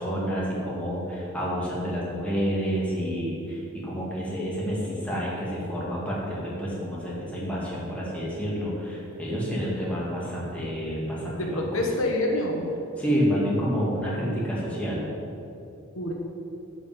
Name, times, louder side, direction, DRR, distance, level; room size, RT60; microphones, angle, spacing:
voice 1, 0.0-11.7 13.0-15.0, equal, 5° left, -6 dB, 2.3 m, -29 dB
voice 2, 11.4-12.6 15.9-16.1, left 1 dB, 75° left, 0 dB, 1.4 m, -26 dB
10.5 x 5.3 x 7.8 m, 2.7 s
head